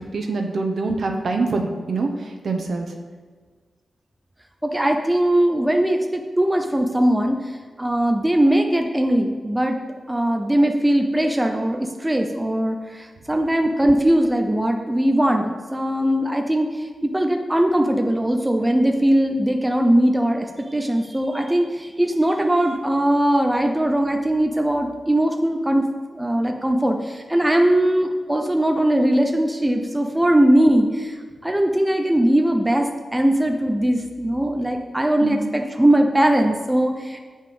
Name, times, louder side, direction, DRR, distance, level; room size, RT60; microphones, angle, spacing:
voice 1, 0.0-2.9 35.2-35.4, right 3 dB, 60° right, 3 dB, 1.0 m, -25 dB
voice 2, 4.6-7.4 7.8-9.8 10.1-16.7 17.0-25.8 26.1-31.2 31.4-37.2, right 1 dB, 10° right, 3 dB, 0.5 m, -20 dB
8.2 x 5.5 x 5.3 m, 1.6 s
wide cardioid pair, 155°, 0 cm